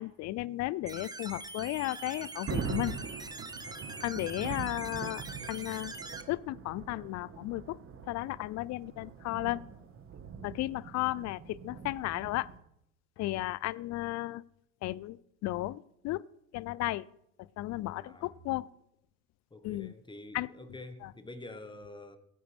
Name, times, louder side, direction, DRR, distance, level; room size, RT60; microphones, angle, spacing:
voice 1, 0.0-2.9 4.0-5.9 6.3-7.8 8.1-9.6 10.4-12.5 13.2-14.4 14.8-15.2 15.4-16.2 16.5-17.1 17.6-18.7 19.6-19.9 20.3-20.5, left 17 dB, 40° left, 0.5 m, -34 dB
sound 1, 0.9-6.2, right 3 dB, 10° right, 1.2 m, -43 dB
Thunder, 1.9-12.6, right 6 dB, 30° right, 1.7 m, -42 dB
voice 2, 18.0-18.4 19.5-22.2, left 2 dB, 10° left, 1.6 m, -47 dB
17.5 x 15.0 x 3.6 m
hypercardioid pair, 90°, 44 cm